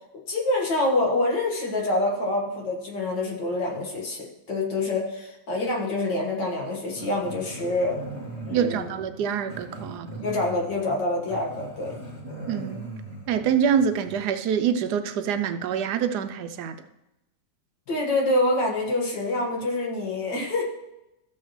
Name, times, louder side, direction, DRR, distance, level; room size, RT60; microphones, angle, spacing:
voice 1, 0.3-8.0 8.5-8.9 10.2-12.0 17.9-20.6, left 2 dB, 85° left, -1 dB, 2.4 m, -26 dB
Growling, 6.9-14.2, right 2 dB, 40° left, 2.3 m, -40 dB
voice 2, 8.5-10.2 12.5-12.9 13.3-16.8, right 8 dB, 75° right, 10 dB, 1.1 m, -25 dB
14.0 x 7.2 x 3.2 m, 0.92 s
omnidirectional pair, 1.8 m